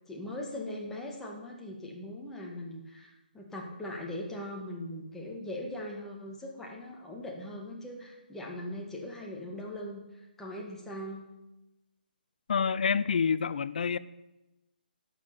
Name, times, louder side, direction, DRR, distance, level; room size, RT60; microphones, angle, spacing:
voice 1, 0.1-11.2, left 1 dB, 5° left, 2.0 m, -40 dB
voice 2, 12.5-14.0, left 6 dB, 55° left, 0.6 m, -27 dB
11.5 x 6.7 x 9.0 m
hypercardioid pair, 150°, 5 cm